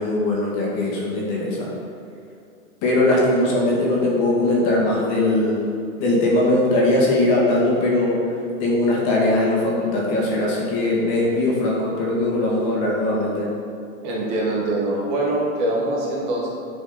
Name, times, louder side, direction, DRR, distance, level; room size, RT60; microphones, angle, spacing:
voice 1, 0.0-1.7 2.8-5.6 6.0-8.3 8.6-13.5, left 2 dB, 35° left, -4 dB, 2.0 m, -20 dB
voice 2, 14.0-16.5, right 1 dB, 35° right, -3 dB, 1.4 m, -23 dB
10.5 x 5.0 x 4.1 m, 2.5 s
hypercardioid pair, 150°, 42 cm